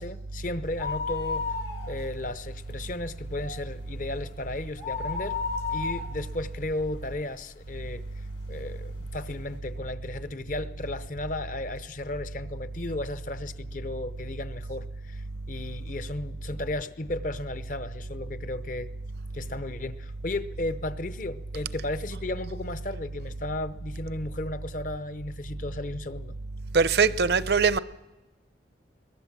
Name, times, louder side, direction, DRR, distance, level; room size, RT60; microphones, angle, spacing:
voice 1, 0.0-1.5 1.9-5.4 5.7-8.0 8.5-18.9 19.3-26.4, left 2 dB, 45° left, 0.8 m, -34 dB
sound 1, 0.7-2.3 2.6-2.7 3.2-7.6 8.1-8.2 9.0-9.1 9.3-9.4, left 5 dB, 75° left, 2.9 m, -33 dB
voice 2, 26.7-27.8, right 5 dB, 60° right, 0.6 m, -21 dB
22.0 x 20.5 x 7.4 m
head